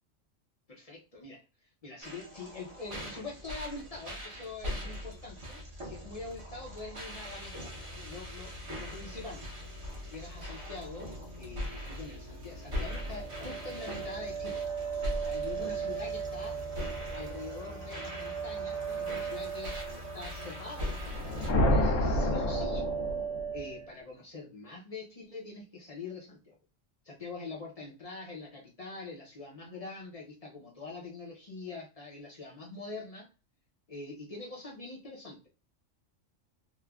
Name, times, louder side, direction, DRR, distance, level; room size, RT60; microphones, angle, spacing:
voice 1, 0.7-1.4 1.8-7.6 7.9-9.5 10.0-14.6 15.2-16.6 17.1-22.9 23.5-26.6 27.0-33.3 33.9-35.5, left 3 dB, 45° left, -2 dB, 0.5 m, -44 dB
sound 1, 2.0-21.5, left 1 dB, 30° right, 0.7 m, -41 dB
sound 2, 12.9-21.0 21.3-21.8 22.2-23.9, right 7 dB, 80° right, 1.0 m, -38 dB
sound 3, 21.0-23.6, left 1 dB, 85° left, 1.0 m, -28 dB
3.0 x 2.1 x 2.3 m, 0.31 s
omnidirectional pair, 1.3 m